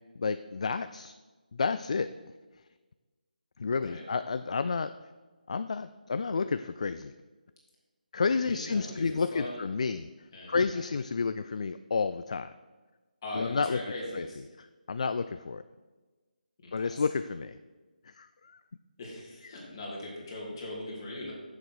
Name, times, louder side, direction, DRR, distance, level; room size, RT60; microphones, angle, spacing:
voice 1, 0.2-1.1 1.5-2.1 3.6-4.9 5.5-7.1 8.1-10.1 10.5-12.5 13.4-13.8 14.1-14.3 14.6-15.6 16.7-17.6 18.1-18.6, left 4 dB, 45° left, 12 dB, 0.3 m, -30 dB
voice 2, 8.4-9.6 10.3-10.8 13.2-14.4 16.6-17.1 19.0-21.3, left 1 dB, 25° left, -4 dB, 2.7 m, -40 dB
8.0 x 7.3 x 6.0 m, 1.3 s
figure-of-eight pair, 170°, 5 cm